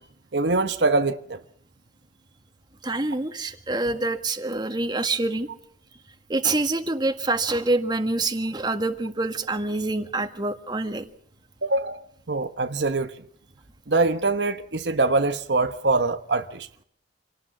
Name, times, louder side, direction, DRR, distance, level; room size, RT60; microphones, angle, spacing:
voice 1, 0.3-1.4 11.6-13.1 13.9-16.7, right 3 dB, 75° right, 1.1 m, -24 dB
voice 2, 2.8-5.5 6.3-11.1, right 2 dB, 25° right, 1.8 m, -26 dB
26.5 x 18.0 x 7.4 m
head